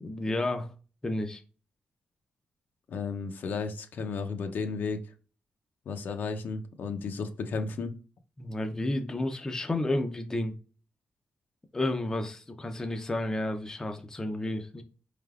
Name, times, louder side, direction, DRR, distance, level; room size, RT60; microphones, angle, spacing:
voice 1, 0.0-0.7 1.0-1.4 8.4-10.5 11.7-14.8, left 1 dB, 15° left, 5 dB, 0.5 m, -31 dB
voice 2, 2.9-5.0 5.9-7.9, left 4 dB, 65° left, 6 dB, 0.6 m, -33 dB
4.7 x 3.3 x 2.4 m, 0.35 s
wide cardioid pair, 145°, 4 cm